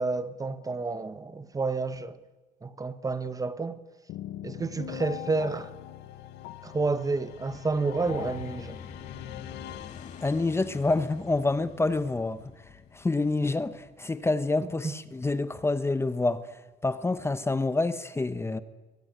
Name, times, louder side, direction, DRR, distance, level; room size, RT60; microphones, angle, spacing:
voice 1, 0.0-2.2 2.6-3.8 4.4-5.7 6.6-8.8 14.8-14.9, right 3 dB, 20° right, 1.1 m, -30 dB
sound 1, 4.1-10.9, left 12 dB, 80° left, 1.2 m, -42 dB
sound 2, 7.9-14.5, left 6 dB, 45° left, 2.4 m, -47 dB
voice 2, 10.2-12.4 12.9-18.6, left 2 dB, 15° left, 1.0 m, -27 dB
23.0 x 19.5 x 9.3 m
cardioid pair, 110°, 17 cm